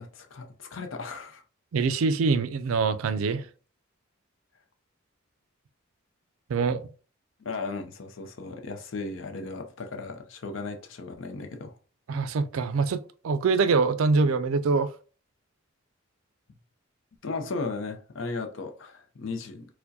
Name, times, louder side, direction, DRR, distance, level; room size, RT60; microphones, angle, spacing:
voice 1, 0.0-1.4 7.4-11.8 17.2-19.7, left 3 dB, 70° left, 0.5 m, -36 dB
voice 2, 1.7-3.5 6.5-6.8 12.1-14.9, right 4 dB, 85° right, 0.4 m, -24 dB
4.5 x 2.1 x 2.6 m
head